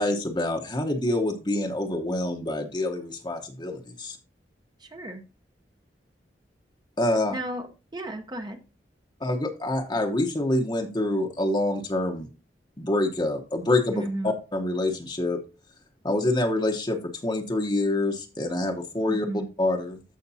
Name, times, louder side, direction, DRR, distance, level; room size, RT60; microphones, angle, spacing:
voice 1, 0.0-4.2 7.0-7.4 9.2-12.3 12.8-15.4 16.0-19.3 19.6-20.0, left 2 dB, 25° left, 1.0 m, -26 dB
voice 2, 4.8-5.2 7.3-7.7 7.9-8.6 13.9-14.3 19.1-19.5, right 1 dB, 25° right, 0.9 m, -33 dB
14.0 x 5.2 x 2.7 m
head